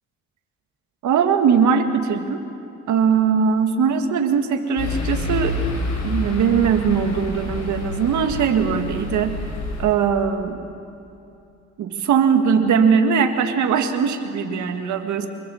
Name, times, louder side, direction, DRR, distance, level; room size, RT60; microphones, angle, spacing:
voice 1, 1.0-2.4 2.9-5.6 6.0-9.4 9.8-10.6 11.8-15.3, right 6 dB, 70° right, 5 dB, 1.9 m, -20 dB
sound 1, 4.8-9.8, left 2 dB, 70° left, 6.6 m, -28 dB
25.5 x 22.0 x 7.1 m, 2.7 s
cardioid pair, 90°, 30 cm